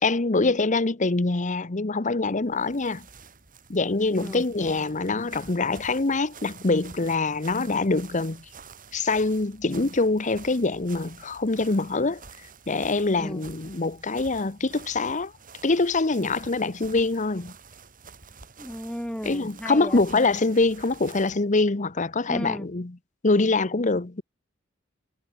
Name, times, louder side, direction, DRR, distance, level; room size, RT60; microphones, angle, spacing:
voice 1, 0.0-3.0 3.7-8.4 8.9-12.2 12.7-15.3 15.6-17.5 19.2-23.0 23.2-24.2, left 3 dB, 40° left, 1.0 m, -24 dB
sound 1, 2.4-21.4, right 5 dB, 45° right, 6.3 m, -48 dB
voice 2, 18.6-20.0 22.3-22.7, equal, 5° left, 6.9 m, -35 dB
head